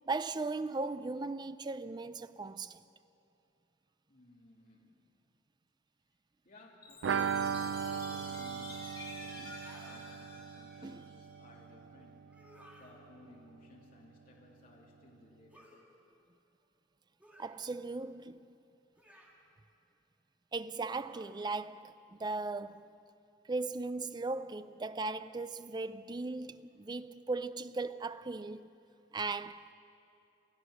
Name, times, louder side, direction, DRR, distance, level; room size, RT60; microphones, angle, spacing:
voice 1, 0.1-2.8 9.4-9.5 10.8-11.1 17.4-18.6 20.5-22.9 23.5-28.7 29.1-29.7, right 3 dB, 25° right, 0.4 m, -38 dB
voice 2, 4.1-5.1 6.4-12.3 12.7-15.9 29.0-29.1, left 1 dB, 50° left, 2.7 m, -59 dB
Chime, 6.8-11.4, left 2 dB, 20° left, 6.4 m, -50 dB
sound 1, 7.0-12.6 12.9-13.0 13.3-13.4, right 7 dB, 80° right, 0.4 m, -38 dB
sound 2, 9.5-10.0 12.3-12.9 15.5-15.8 17.2-17.6 18.9-19.4 21.0-21.4, equal, 10° right, 2.4 m, -58 dB
28.0 x 15.0 x 6.4 m
head